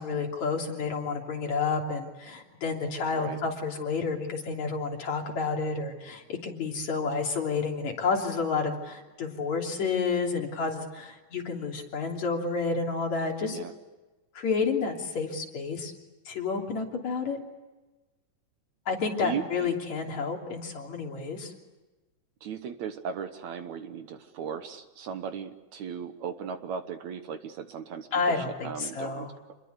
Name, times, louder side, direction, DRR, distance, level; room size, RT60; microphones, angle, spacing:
voice 1, 0.0-13.6 14.3-15.9 16.3-17.4 18.9-21.5 28.1-29.3, left 4 dB, 55° left, 0 dB, 4.4 m, -30 dB
voice 2, 19.2-19.7 22.4-29.5, right 7 dB, 65° right, 9 dB, 2.3 m, -37 dB
28.0 x 21.5 x 8.2 m, 1.1 s
omnidirectional pair, 3.8 m